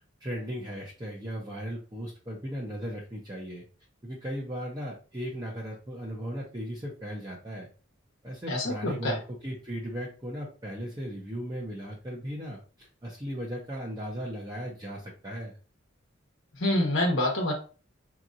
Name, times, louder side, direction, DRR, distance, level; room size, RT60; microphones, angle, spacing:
voice 1, 0.2-3.6 4.0-7.7 8.2-15.6, equal, 20° right, -4 dB, 0.8 m, -37 dB
voice 2, 8.5-9.2 16.6-17.5, left 1 dB, 65° left, -1 dB, 1.1 m, -26 dB
5.0 x 3.0 x 2.5 m, 0.36 s
head